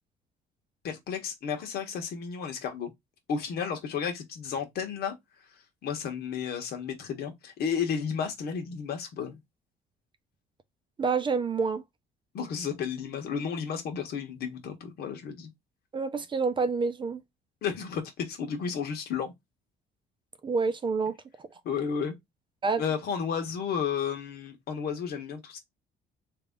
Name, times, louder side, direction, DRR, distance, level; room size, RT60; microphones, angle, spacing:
voice 1, 0.8-2.9 3.3-5.1 5.8-9.4 12.3-15.5 17.6-19.3 21.6-22.1 22.8-25.6, left 7 dB, 65° left, 1.3 m, -32 dB
voice 2, 11.0-11.8 15.9-17.2 20.4-21.1 22.6-22.8, right 4 dB, 30° right, 0.6 m, -27 dB
3.4 x 2.8 x 3.6 m
cardioid pair, 110°, 17 cm